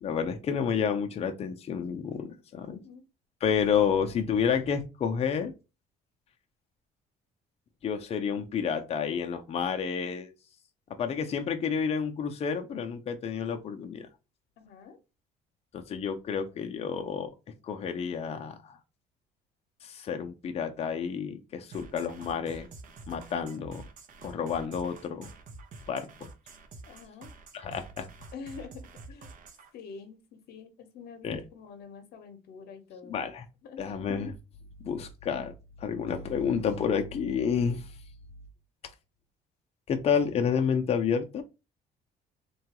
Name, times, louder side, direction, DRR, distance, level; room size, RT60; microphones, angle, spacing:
voice 1, 0.0-2.8 3.4-5.5 7.8-10.3 11.0-14.1 15.7-17.3 17.7-18.8 19.8-22.7 23.1-23.8 24.2-25.3 25.9-26.3 27.5-28.1 31.2-31.4 33.1-33.4 33.8-34.3 34.8-35.5 35.8-37.9 39.9-41.4, left 7 dB, 40° left, 0.5 m, -30 dB
voice 2, 14.6-15.0 26.9-27.3 28.3-29.3 29.7-33.3 33.6-33.9 34.9-35.1, left 5 dB, 70° left, 0.8 m, -46 dB
sound 1, 21.7-29.7, right 3 dB, 50° right, 0.5 m, -48 dB
2.9 x 2.3 x 2.9 m
cardioid pair, 110°, 17 cm